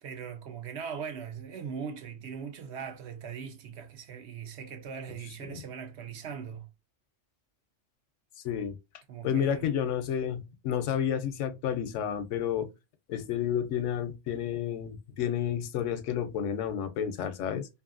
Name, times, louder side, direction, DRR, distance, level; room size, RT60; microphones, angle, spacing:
voice 1, 0.0-6.7 9.1-9.8, right 7 dB, 70° right, 0.9 m, -40 dB
voice 2, 8.4-8.8 9.2-12.7 13.1-17.7, left 9 dB, 85° left, 0.9 m, -30 dB
2.6 x 2.5 x 2.4 m
omnidirectional pair, 1.2 m